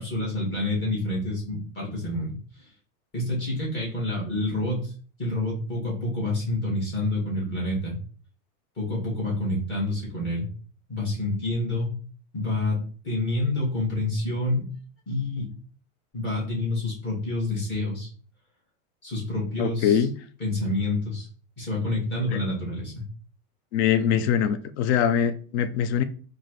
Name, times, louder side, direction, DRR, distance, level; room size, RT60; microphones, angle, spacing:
voice 1, 0.0-2.4 3.1-4.9 5.2-7.9 8.8-10.5 10.9-12.0 12.3-12.8 13.0-14.7 15.1-15.5 16.1-18.1 19.0-20.0 20.4-21.3 21.6-22.9, left 2 dB, 25° left, 2.0 m, -28 dB
voice 2, 19.6-20.1 22.3-22.4 23.7-26.0, left 8 dB, 50° left, 0.5 m, -23 dB
4.6 x 2.5 x 3.1 m
supercardioid pair, 155°, 43 cm